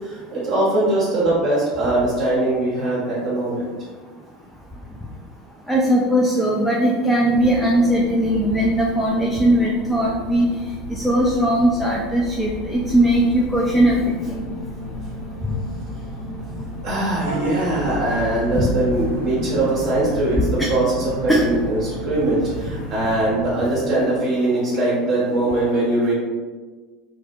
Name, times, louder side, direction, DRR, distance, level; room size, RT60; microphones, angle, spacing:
voice 1, 0.0-3.7 16.8-26.1, right 2 dB, 45° right, -7 dB, 0.6 m, -21 dB
voice 2, 5.7-10.5 10.9-14.3 15.4-15.5 18.5-18.7 20.6-20.7 21.3-21.4, right 1 dB, ahead, -3 dB, 0.3 m, -19 dB
sound 1, 7.3-23.8, equal, 70° left, 0.7 m, -34 dB
Vehicle horn car horn honking / Bus, 17.2-23.3, left 1 dB, 85° right, 0.3 m, -33 dB
2.5 x 2.1 x 2.6 m, 1.4 s
figure-of-eight pair, 70°, 0 cm